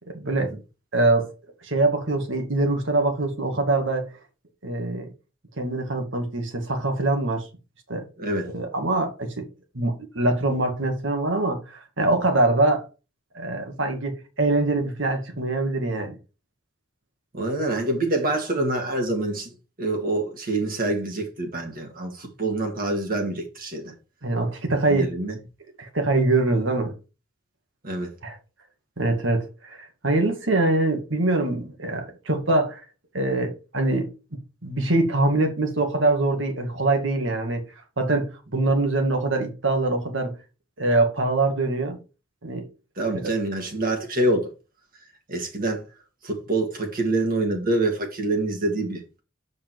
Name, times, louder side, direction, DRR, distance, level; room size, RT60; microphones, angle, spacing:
voice 1, 0.1-0.5 0.9-1.3 1.6-4.1 4.6-5.1 5.6-7.4 7.9-8.0 8.4-9.5 9.7-12.9 13.3-16.2 24.2-25.1 25.8-26.9 28.2-28.4 29.0-32.8 33.1-34.1 34.6-37.6 38.0-38.3 38.5-40.3 40.8-42.0 42.4-42.7 43.2-43.3, right 2 dB, 70° right, 2.1 m, -23 dB
voice 2, 8.2-8.5 17.3-19.5 19.8-23.9 24.9-25.4 27.8-28.1 43.0-44.5 45.3-45.8 46.2-49.0, right 2 dB, 45° right, 1.9 m, -26 dB
7.3 x 5.4 x 4.6 m
head